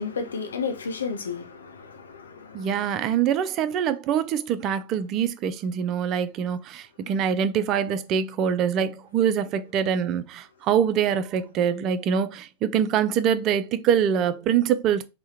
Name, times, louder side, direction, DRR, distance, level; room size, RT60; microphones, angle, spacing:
voice 1, 0.0-2.7, left 5 dB, 70° left, 0.5 m, -32 dB
voice 2, 2.5-15.0, right 8 dB, 35° right, 0.3 m, -24 dB
3.4 x 2.1 x 2.9 m
figure-of-eight pair, 90°, 0 cm